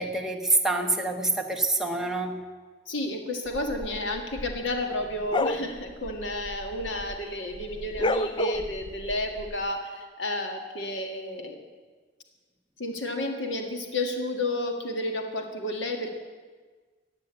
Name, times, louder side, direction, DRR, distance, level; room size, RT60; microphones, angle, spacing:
voice 1, 0.0-2.4, right 2 dB, 5° right, 1 dB, 1.3 m, -26 dB
voice 2, 2.9-11.6 12.8-16.2, left 1 dB, 75° left, 3 dB, 1.9 m, -31 dB
sound 1, 3.5-7.2 7.5-9.5, left 2 dB, 25° left, 0.5 m, -31 dB
15.5 x 9.1 x 8.8 m, 1.4 s
head